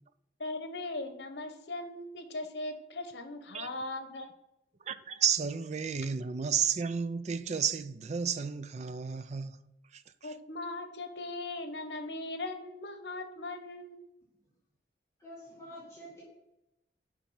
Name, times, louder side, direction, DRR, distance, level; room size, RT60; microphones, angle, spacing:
voice 1, 0.4-4.3 10.2-14.0 15.7-15.8, left 2 dB, 75° left, 1.0 m, -39 dB
voice 2, 4.9-9.6 9.9-10.0, right 7 dB, 40° right, 0.4 m, -32 dB
voice 3, 15.2-16.2, equal, 15° left, 1.9 m, -48 dB
7.4 x 5.5 x 5.6 m
head